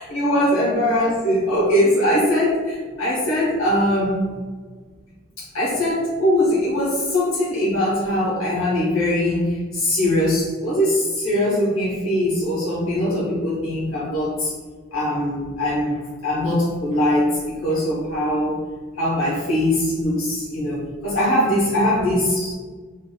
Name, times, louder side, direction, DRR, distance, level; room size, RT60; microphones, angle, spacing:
voice 1, 0.0-4.4 5.4-14.5 14.9-18.6 19.0-22.6, left 1 dB, 90° left, -8 dB, 0.9 m, -21 dB
3.9 x 2.4 x 2.2 m, 1.5 s
head